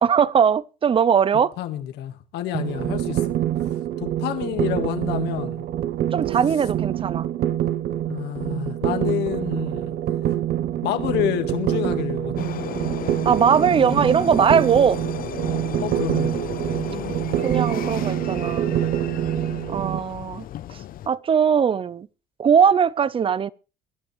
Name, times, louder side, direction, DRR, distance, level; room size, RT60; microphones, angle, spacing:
voice 1, 0.0-1.5 6.1-7.3 13.2-15.0 17.4-18.7 19.7-20.5 21.1-22.1 22.4-23.5, right 7 dB, 30° right, 0.6 m, -20 dB
voice 2, 1.6-3.4 4.0-5.6 8.1-9.9 10.8-12.5 15.8-16.3, left 12 dB, 85° left, 1.7 m, -28 dB
sound 1, 2.5-20.0, right 11 dB, 65° right, 0.8 m, -26 dB
sound 2, 12.4-21.1, left 12 dB, 60° left, 0.8 m, -34 dB
22.5 x 11.5 x 3.3 m
cardioid pair, 110°, 17 cm